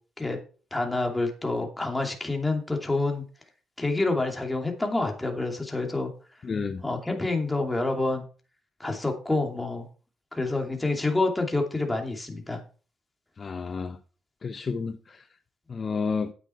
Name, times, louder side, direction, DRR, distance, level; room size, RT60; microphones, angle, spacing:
voice 1, 0.7-3.2 3.8-6.1 6.8-8.2 8.8-9.9 10.3-12.6, left 2 dB, 10° left, 2.6 m, -27 dB
voice 2, 6.4-6.8 13.4-14.0 14.4-15.3 15.7-16.3, left 5 dB, 40° left, 0.8 m, -31 dB
9.6 x 8.2 x 4.5 m
cardioid pair, 90°, 0 cm